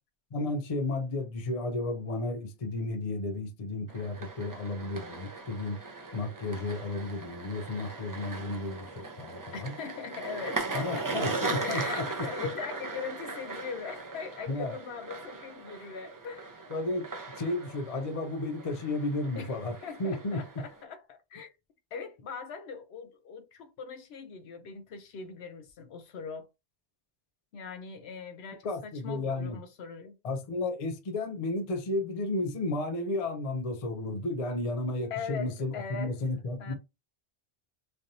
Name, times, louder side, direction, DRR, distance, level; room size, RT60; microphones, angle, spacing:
voice 1, 0.3-5.8 6.1-9.7 10.7-12.1 14.5-14.7 16.7-17.1 17.4-20.4 28.6-29.6 30.2-36.7, left 2 dB, 45° left, 0.5 m, -33 dB
sound 1, 3.9-20.8, right 3 dB, 30° right, 0.3 m, -39 dB
voice 2, 9.5-11.1 11.6-16.5 19.4-19.6 19.8-21.5 21.9-26.5 27.5-30.1 35.1-36.2 36.6-36.7, left 6 dB, 65° left, 0.8 m, -40 dB
3.3 x 2.5 x 2.7 m
omnidirectional pair, 1.2 m